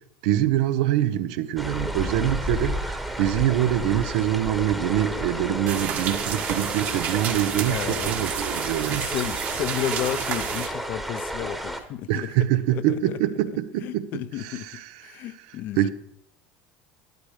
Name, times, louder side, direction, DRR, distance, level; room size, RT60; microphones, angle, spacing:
voice 1, 0.2-9.1 12.1-14.1 14.4-15.2 15.8-15.9, right 12 dB, 75° right, 0.9 m, -25 dB
sound 1, 1.6-11.8, equal, ahead, 1.1 m, -32 dB
sound 2, 5.7-10.7, right 8 dB, 45° right, 1.5 m, -30 dB
voice 2, 7.7-8.2 8.5-13.2 13.8-15.9, left 12 dB, 45° left, 0.6 m, -33 dB
12.0 x 12.0 x 4.9 m
cardioid pair, 150°, 4 cm